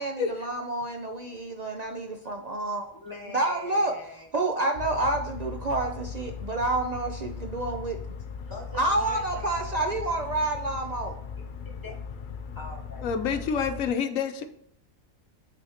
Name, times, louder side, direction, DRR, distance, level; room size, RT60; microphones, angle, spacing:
voice 1, 0.0-2.9 3.3-3.9 4.3-8.0 8.8-11.1, right 2 dB, 50° right, 2 dB, 0.5 m, -28 dB
voice 2, 2.9-4.4 8.5-9.8 10.0-10.2 11.7-11.9 12.5-13.0 13.3-13.4, left 1 dB, 15° left, -2 dB, 1.5 m, -43 dB
Ship's interior, 4.7-13.9, left 6 dB, 60° left, 0.5 m, -38 dB
voice 3, 13.0-14.4, left 6 dB, 80° left, 8 dB, 1.1 m, -28 dB
8.6 x 4.2 x 2.9 m, 0.70 s
omnidirectional pair, 1.4 m